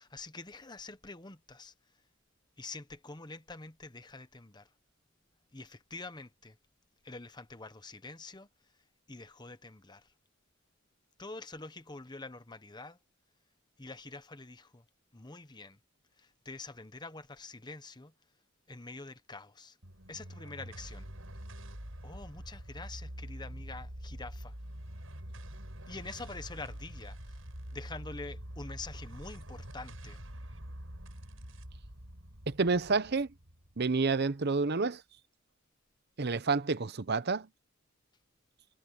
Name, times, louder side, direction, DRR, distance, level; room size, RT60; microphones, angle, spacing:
voice 1, 0.0-1.7 2.6-4.7 5.5-6.6 7.0-8.5 9.1-10.1 11.2-13.0 13.8-14.8 15.1-15.8 16.2-18.1 18.7-19.8 20.1-21.1 22.0-24.5 25.9-27.2 27.7-30.2, left 3 dB, 20° left, 1.1 m, -46 dB
sound 1, 19.8-34.4, equal, 85° right, 6.1 m, -45 dB
voice 2, 32.5-33.3 33.8-35.0 36.2-37.5, right 4 dB, 55° right, 0.8 m, -29 dB
head